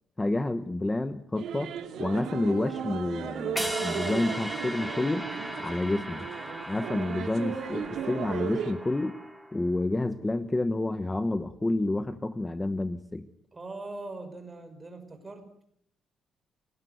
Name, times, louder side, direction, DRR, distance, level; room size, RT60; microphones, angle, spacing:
voice 1, 0.2-1.7 2.0-5.3 5.6-6.3 6.7-9.2 9.5-13.3, left 2 dB, 15° left, 11 dB, 1.0 m, -29 dB
sound 1, 1.4-8.7, right 8 dB, 75° right, 2.5 m, -36 dB
sound 2, 3.6-9.7, equal, ahead, 3.7 m, -38 dB
voice 2, 13.5-15.6, right 2 dB, 20° right, 7 dB, 5.7 m, -41 dB
29.0 x 19.0 x 8.1 m, 0.69 s
cardioid pair, 130°, 0 cm